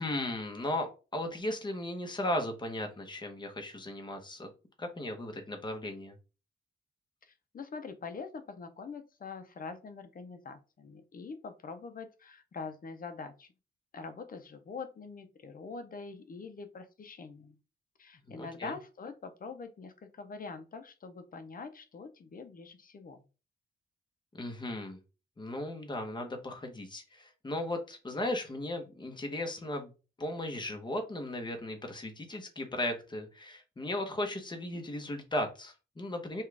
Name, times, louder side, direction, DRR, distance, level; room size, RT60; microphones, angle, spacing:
voice 1, 0.0-4.5 4.8-6.2 18.3-18.7 24.3-25.0 25.4-29.9 30.2-36.4, left 1 dB, 20° left, 4 dB, 1.0 m, -36 dB
voice 2, 7.3-13.5 13.9-17.6 18.0-23.2, left 4 dB, 45° left, 8 dB, 0.7 m, -44 dB
5.4 x 2.4 x 3.4 m, 0.32 s
wide cardioid pair, 125°, 20 cm